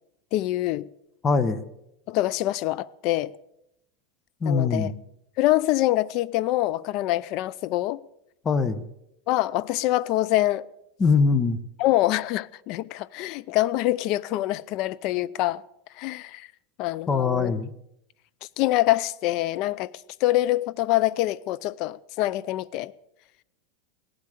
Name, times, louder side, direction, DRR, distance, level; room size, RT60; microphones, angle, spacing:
voice 1, 0.3-0.9 2.1-3.3 4.4-4.9 5.4-8.0 9.3-10.7 11.8-15.6 15.9-16.5 16.8-17.5 18.4-19.9 20.2-22.9, left 16 dB, 50° left, 0.6 m, -25 dB
voice 2, 1.2-1.6 4.4-4.9 8.4-8.8 11.0-11.6 17.1-17.7, left 4 dB, 25° left, 1.1 m, -22 dB
18.0 x 12.0 x 6.7 m
supercardioid pair, 125°, 0 cm